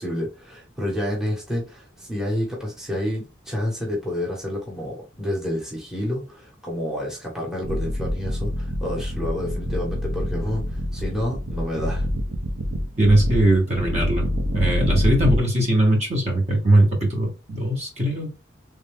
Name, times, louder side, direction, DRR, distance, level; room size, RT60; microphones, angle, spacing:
voice 1, 0.0-12.1, left 1 dB, 5° right, 1.1 m, -29 dB
sound 1, 7.6-15.4, equal, 85° right, 0.7 m, -26 dB
voice 2, 13.0-14.3 14.5-18.3, right 1 dB, 35° right, 1.2 m, -20 dB
3.4 x 2.6 x 3.5 m
head